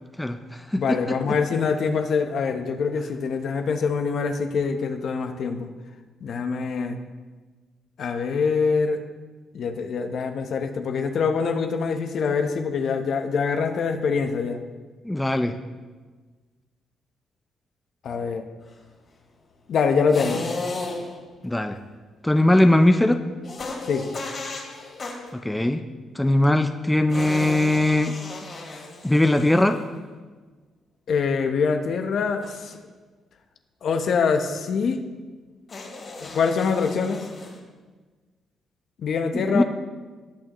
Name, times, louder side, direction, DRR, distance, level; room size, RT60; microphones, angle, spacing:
voice 1, 0.2-1.2 15.0-15.5 21.4-21.8 22.2-23.2 25.3-25.8 26.2-28.2 29.0-29.8 39.3-39.6, left 1 dB, 10° left, 7 dB, 0.5 m, -20 dB
voice 2, 0.7-5.7 6.2-7.0 8.0-9.0 9.5-14.6 18.0-18.4 19.7-20.5 23.8-24.1 31.1-32.8 33.8-35.0 36.2-37.3 39.0-39.6, left 5 dB, 60° left, 6 dB, 0.9 m, -24 dB
sound 1, 20.1-21.3 23.4-25.3 27.1-30.0 32.4-32.8 35.7-37.6, left 3 dB, 45° left, 2.5 m, -35 dB
17.5 x 6.3 x 3.0 m, 1.4 s
cardioid pair, 90°, 0 cm